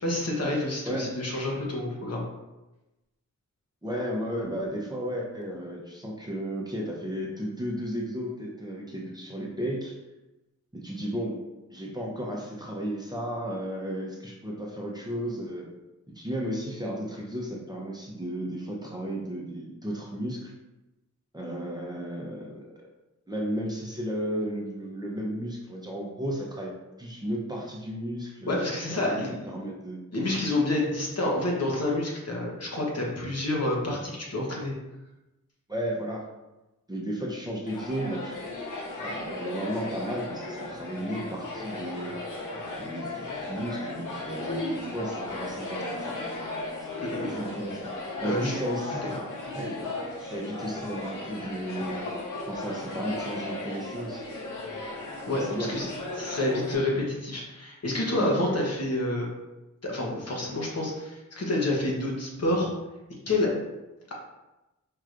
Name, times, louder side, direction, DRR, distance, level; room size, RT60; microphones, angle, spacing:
voice 1, 0.0-2.2 28.5-29.5 30.1-34.7 47.0-47.4 48.2-48.5 55.3-55.9 56.2-59.3 59.8-62.7 63.3-63.5, left 1 dB, 55° left, -2 dB, 1.1 m, -28 dB
voice 2, 3.8-9.9 10.7-11.4 11.7-15.6 16.1-20.5 21.3-22.7 23.3-26.7 27.0-29.2 29.5-30.0 35.7-36.3 36.9-38.4 39.0-42.1 42.8-46.2 46.8-46.9 47.3-47.9 48.2-49.1 49.5-49.8 50.2-52.0 52.5-54.2 55.4-55.7 56.3-56.4 58.1-58.4, equal, 15° right, -3 dB, 0.8 m, -34 dB
sound 1, 37.7-56.7, left 2 dB, 80° left, 0.9 m, -36 dB
4.7 x 3.0 x 2.5 m, 1.0 s
cardioid pair, 65°, 31 cm